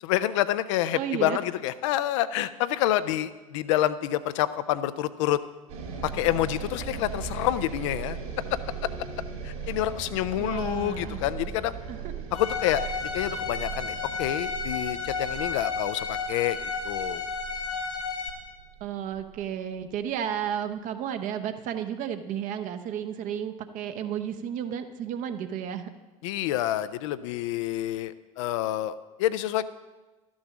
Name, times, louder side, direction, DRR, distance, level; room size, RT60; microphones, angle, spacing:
voice 1, 0.0-5.4 6.0-8.2 8.8-8.9 9.4-11.7 12.3-12.8 13.1-16.6 16.8-17.2 26.2-29.6, left 13 dB, 55° left, 13 dB, 0.5 m, -28 dB
voice 2, 0.9-1.4 10.4-11.2 11.9-12.1 18.8-25.9, right 9 dB, 45° right, 8 dB, 0.9 m, -32 dB
sound 1, 5.7-20.0, right 6 dB, 65° right, 2.6 m, -38 dB
Bowed string instrument, 12.3-18.3, left 4 dB, 75° left, 2.2 m, -32 dB
12.5 x 6.3 x 7.2 m, 1.2 s
figure-of-eight pair, 70°, 19 cm